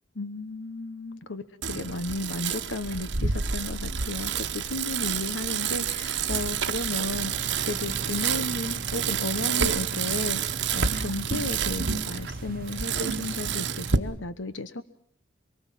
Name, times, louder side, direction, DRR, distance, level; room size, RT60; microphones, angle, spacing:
voice 1, 0.1-14.8, left 2 dB, 80° left, 13 dB, 1.2 m, -34 dB
Bicycle, 1.6-14.0, right 7 dB, 65° right, 1.2 m, -29 dB
sound 1, 7.1-13.9, right 3 dB, 50° right, 1.1 m, -40 dB
24.5 x 23.5 x 7.5 m, 0.66 s
head